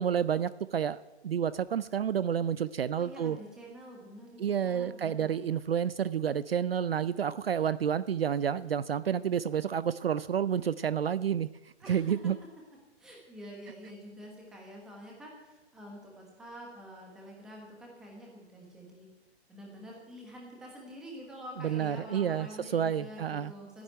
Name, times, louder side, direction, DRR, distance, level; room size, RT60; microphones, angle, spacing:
voice 1, 0.0-3.4 4.4-12.4 21.6-23.5, right 8 dB, 60° right, 17 dB, 0.5 m, -30 dB
voice 2, 2.9-5.3 11.8-12.3 13.0-19.1 19.5-23.8, equal, ahead, -2 dB, 1.2 m, -47 dB
13.5 x 10.5 x 9.4 m, 1.1 s
hypercardioid pair, 180°, 34 cm